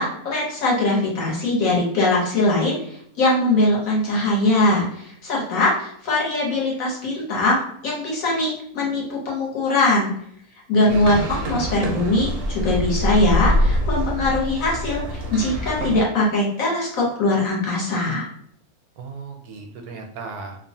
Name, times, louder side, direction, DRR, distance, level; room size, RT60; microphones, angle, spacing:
voice 1, 0.0-2.8 3.2-10.1 10.7-18.3, left 2 dB, 70° left, -4 dB, 1.3 m, -21 dB
sound 1, 10.9-16.0, equal, 60° right, 0.6 m, -24 dB
voice 2, 10.9-11.3 19.0-20.6, right 4 dB, 80° right, 3 dB, 1.0 m, -36 dB
2.9 x 2.1 x 2.7 m, 0.68 s
omnidirectional pair, 1.5 m